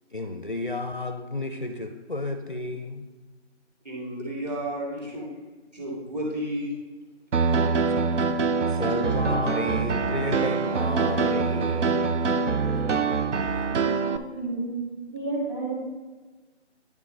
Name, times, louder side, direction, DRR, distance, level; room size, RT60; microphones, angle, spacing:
voice 1, 0.1-3.1 6.2-6.3 7.8-8.2 8.7-12.1, left 2 dB, 45° left, 8 dB, 0.4 m, -32 dB
voice 2, 3.8-5.3 5.7-6.7, right 1 dB, 35° right, -5 dB, 2.6 m, -32 dB
Piano, 7.3-14.2, right 4 dB, 80° right, 0.7 m, -24 dB
voice 3, 13.7-15.7, right 3 dB, 15° right, -7 dB, 2.2 m, -32 dB
10.5 x 5.8 x 3.2 m, 1.2 s
figure-of-eight pair, 170°, 36 cm